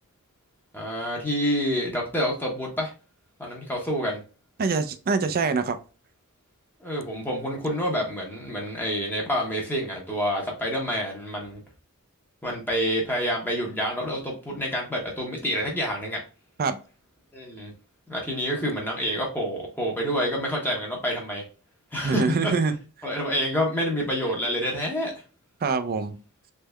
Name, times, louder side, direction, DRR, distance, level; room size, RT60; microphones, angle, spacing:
voice 1, 0.7-2.9 3.4-4.2 6.8-11.6 12.4-16.2 17.3-17.7 18.1-21.5 21.9-22.5 23.0-25.1, equal, 10° left, 0.8 m, -28 dB
voice 2, 4.6-5.8 16.6-16.8 22.0-22.8 25.6-26.1, right 4 dB, 40° right, 0.4 m, -24 dB
3.5 x 3.2 x 2.2 m
head